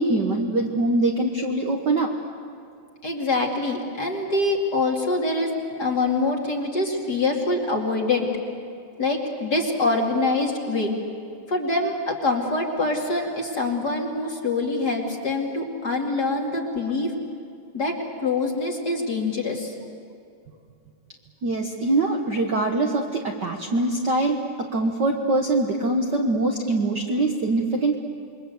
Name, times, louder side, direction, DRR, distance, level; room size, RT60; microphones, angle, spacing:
voice 1, 0.0-2.1 21.4-28.0, right 2 dB, 45° right, 1 dB, 1.6 m, -23 dB
voice 2, 3.0-5.5 5.8-8.3 9.0-11.0 11.5-17.1 17.7-19.7, left 2 dB, 35° left, 0 dB, 2.8 m, -25 dB
28.0 x 23.0 x 8.1 m, 2.3 s
omnidirectional pair, 3.5 m